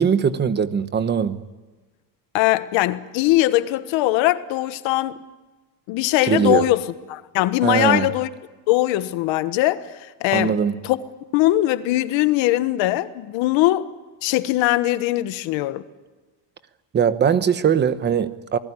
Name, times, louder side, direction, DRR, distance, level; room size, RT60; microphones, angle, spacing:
voice 1, 0.0-1.4 6.3-6.7 7.6-8.1 10.3-10.7 16.9-18.6, right 7 dB, 25° right, 1.0 m, -20 dB
voice 2, 2.3-5.2 5.9-8.3 8.7-9.9 10.2-10.5 10.8-11.0 11.3-13.9 14.2-15.8, left 16 dB, 85° left, 1.4 m, -21 dB
28.0 x 19.5 x 9.8 m
cardioid pair, 175°, 44 cm